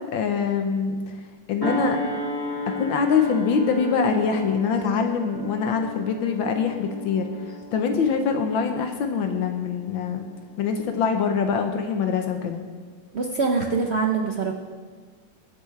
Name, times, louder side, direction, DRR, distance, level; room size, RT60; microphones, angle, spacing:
voice 1, 0.1-1.0 1.5-2.0 2.7-7.3 7.7-10.2 10.6-12.6, left 6 dB, 70° left, 5 dB, 1.6 m, -24 dB
sound 1, 1.6-10.5 10.9-11.1, left 1 dB, 10° left, 2.0 m, -34 dB
voice 2, 13.1-14.5, right 4 dB, 80° right, 1 dB, 0.5 m, -24 dB
22.5 x 8.3 x 3.3 m, 1.5 s
omnidirectional pair, 2.3 m